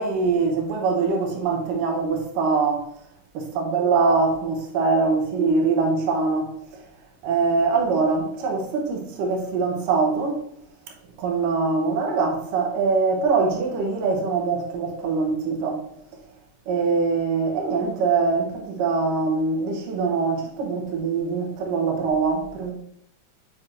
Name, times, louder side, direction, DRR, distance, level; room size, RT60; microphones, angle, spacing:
voice 1, 0.0-2.8 3.6-6.5 7.2-10.4 11.2-15.8 16.7-22.7, right 4 dB, 75° right, 2.5 m, -23 dB
7.7 x 6.1 x 2.5 m
omnidirectional pair, 4.1 m